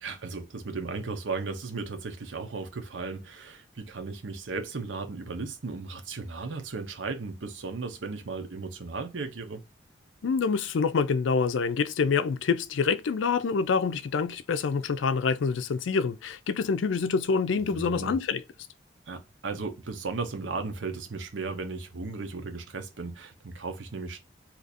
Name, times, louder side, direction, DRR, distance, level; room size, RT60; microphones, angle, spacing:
voice 1, 0.0-9.6 17.7-18.1 19.1-24.2, right 4 dB, 85° right, 0.7 m, -36 dB
voice 2, 10.2-18.4, left 5 dB, 85° left, 0.4 m, -26 dB
2.8 x 2.5 x 4.0 m
head